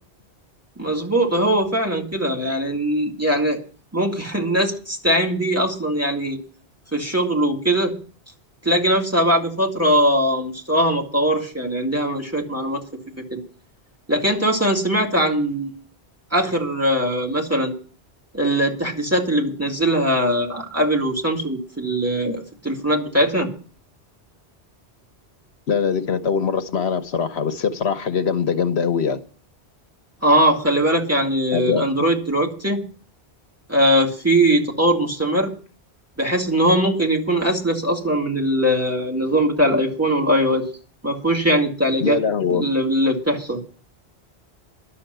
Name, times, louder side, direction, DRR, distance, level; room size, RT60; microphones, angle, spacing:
voice 1, 0.8-3.6 3.9-6.4 6.9-7.9 8.6-12.8 13.2-13.4 14.1-15.7 16.3-17.7 18.3-23.5 30.2-32.8 33.7-35.5 36.2-40.7 41.0-42.2 42.5-43.6, right 1 dB, 15° right, 2.1 m, -21 dB
voice 2, 25.7-29.2 31.5-31.9 42.0-42.7, left 6 dB, 75° left, 1.1 m, -22 dB
11.5 x 7.0 x 9.0 m
omnidirectional pair, 1.1 m